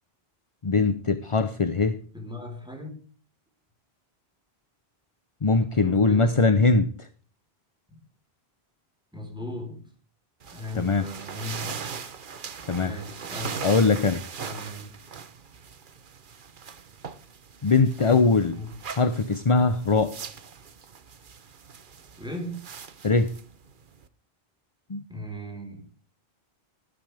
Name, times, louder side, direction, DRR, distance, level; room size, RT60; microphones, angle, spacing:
voice 1, 0.6-2.0 5.4-7.1 10.7-11.1 12.7-12.9 13.6-14.2 17.6-18.6 18.9-20.2 23.0-23.3 24.9-25.0, left 3 dB, 35° left, 0.8 m, -21 dB
voice 2, 2.1-3.0 5.8-6.4 7.9-8.0 9.1-9.8 10.5-11.9 12.8-13.7 14.4-14.9 18.0-18.8 22.2-22.6 25.1-25.9, left 1 dB, 5° right, 4.4 m, -37 dB
sound 1, 10.4-24.1, right 6 dB, 55° right, 1.1 m, -40 dB
14.0 x 13.0 x 3.5 m
omnidirectional pair, 1.1 m